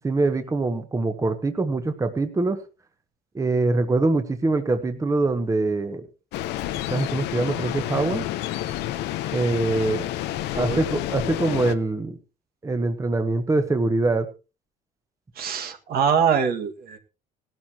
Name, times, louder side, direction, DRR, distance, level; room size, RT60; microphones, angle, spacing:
voice 1, 0.0-2.6 3.3-6.1 6.9-8.3 9.3-10.0 10.6-12.2 12.6-14.3, right 3 dB, 20° right, 8 dB, 1.3 m, -23 dB
sound 1, 6.3-11.7, left 13 dB, 85° left, 0.9 m, -29 dB
voice 2, 10.5-10.8 15.4-17.0, right 7 dB, 60° right, 5 dB, 1.9 m, -24 dB
18.0 x 12.5 x 2.9 m, 0.31 s
cardioid pair, 110°, 17 cm